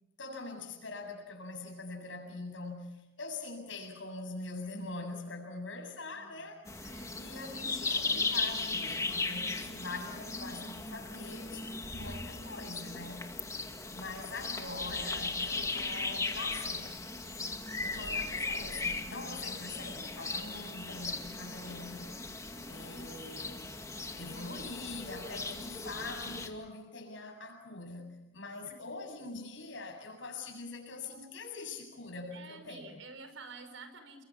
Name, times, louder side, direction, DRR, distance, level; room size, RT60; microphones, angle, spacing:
voice 1, 0.2-6.7 7.2-13.3 13.9-17.0 17.8-22.3 22.7-23.8 24.1-33.0, left 3 dB, 75° left, 7.8 m, -43 dB
voice 2, 6.1-7.6 28.7-28.8 32.3-34.2, right 4 dB, 90° right, 5.3 m, -51 dB
sound 1, 6.7-26.5, left 3 dB, 15° left, 2.3 m, -37 dB
30.0 x 24.0 x 7.4 m
head